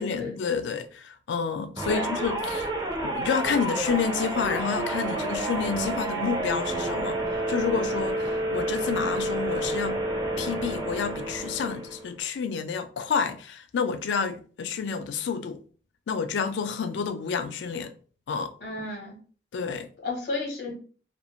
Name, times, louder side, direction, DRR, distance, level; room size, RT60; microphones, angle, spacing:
voice 1, 0.0-2.7 3.0-10.0 10.4-15.6 16.1-17.9 18.3-18.5 19.5-19.9, left 6 dB, 85° left, 0.3 m, -29 dB
sound 1, 1.8-12.1, right 1 dB, 20° right, 0.4 m, -29 dB
voice 2, 18.6-19.2 20.0-20.7, left 3 dB, 65° left, 0.9 m, -32 dB
2.4 x 2.0 x 2.8 m
head